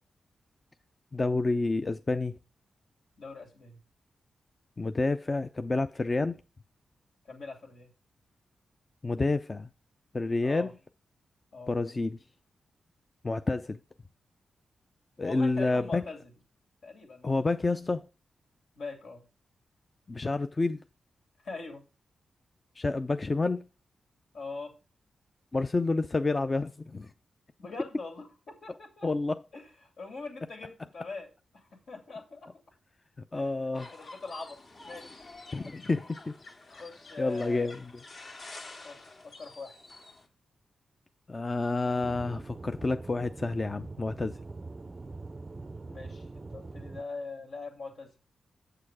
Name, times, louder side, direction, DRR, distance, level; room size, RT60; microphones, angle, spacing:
voice 1, 1.1-2.3 4.8-6.4 9.0-9.7 10.1-10.7 11.7-12.2 13.2-13.8 15.2-16.0 17.2-18.1 20.1-20.8 22.8-23.6 25.5-27.1 29.0-29.4 33.3-33.9 35.5-36.3 37.2-37.9 41.3-44.4, left 3 dB, 30° left, 0.5 m, -29 dB
voice 2, 3.2-3.8 7.2-7.9 10.4-10.7 11.5-11.8 15.2-16.3 16.8-17.5 18.7-19.2 21.4-21.8 24.3-24.7 27.6-29.1 29.5-31.3 31.5-32.5 33.3-34.6 34.8-35.2 36.7-37.7 38.8-39.8 45.8-48.1, left 3 dB, 75° left, 2.8 m, -42 dB
sound 1, 33.7-40.3, left 2 dB, 60° left, 2.1 m, -48 dB
Aircraft / Engine, 42.0-47.0, right 3 dB, 35° right, 0.4 m, -43 dB
7.8 x 6.7 x 4.8 m
cardioid pair, 70°, 0 cm